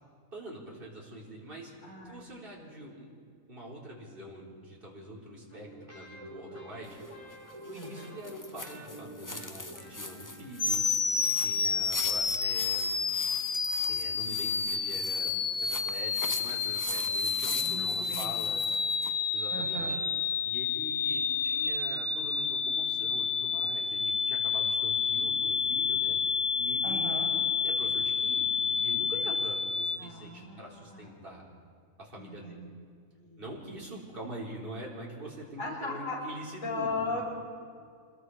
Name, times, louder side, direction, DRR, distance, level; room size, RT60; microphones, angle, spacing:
voice 1, 0.3-3.1 3.5-7.0 7.6-10.8 11.2-13.0 13.9-15.3 15.6-18.6 19.3-20.0 20.4-26.2 26.5-27.3 27.6-31.4 32.0-32.6 33.4-37.2, right 1 dB, 40° right, -4 dB, 4.3 m, -44 dB
voice 2, 1.8-2.3 2.6-2.7 7.7-8.2 17.6-18.5 19.5-20.0 26.8-27.3 30.0-31.1 32.2-32.7 33.1-33.5 35.6-36.2 36.6-37.2, left 3 dB, 70° left, -5 dB, 7.1 m, -38 dB
sound 1, 5.5-11.1, right 1 dB, 20° right, 3.9 m, -48 dB
sound 2, 6.8-19.2, left 2 dB, 15° left, 1.0 m, -41 dB
sound 3, 10.6-30.0, left 6 dB, 40° left, 0.7 m, -29 dB
27.5 x 21.5 x 4.9 m, 2.1 s
omnidirectional pair, 1.4 m